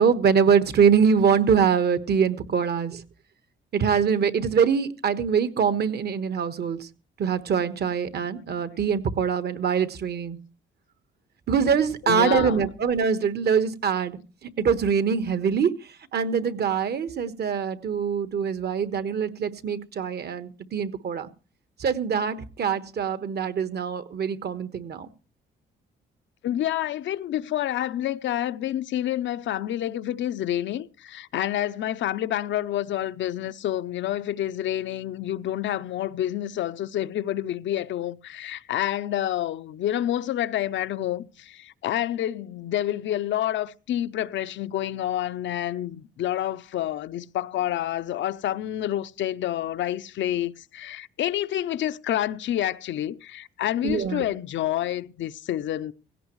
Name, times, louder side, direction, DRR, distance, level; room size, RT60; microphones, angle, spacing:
voice 1, 0.0-3.0 3.7-6.9 7.2-10.4 11.5-15.7 16.1-21.3 21.8-25.1 53.8-54.3, right 6 dB, 55° right, 1.3 m, -23 dB
voice 2, 12.0-12.6 26.4-55.9, left 12 dB, 70° left, 0.6 m, -28 dB
17.0 x 16.5 x 3.1 m
cardioid pair, 90°, 20 cm